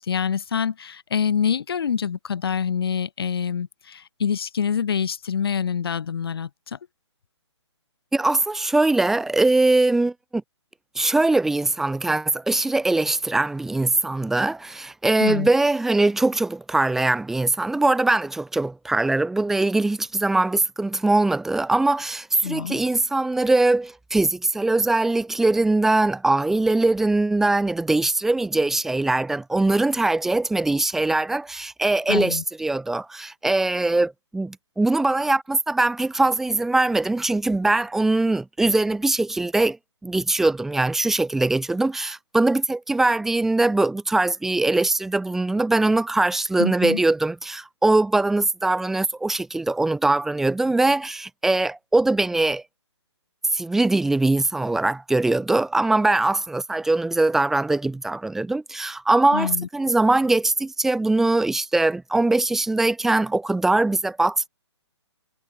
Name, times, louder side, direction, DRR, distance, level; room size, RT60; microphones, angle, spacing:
voice 1, 0.0-6.8 15.2-15.5 22.4-22.8 32.1-32.4 46.6-47.0 59.3-59.7, left 7 dB, 55° left, 2.2 m, -26 dB
voice 2, 8.1-10.4 11.0-39.8 40.0-52.6 53.5-64.5, right 2 dB, ahead, 2.1 m, -21 dB
hypercardioid pair, 170°, 15 cm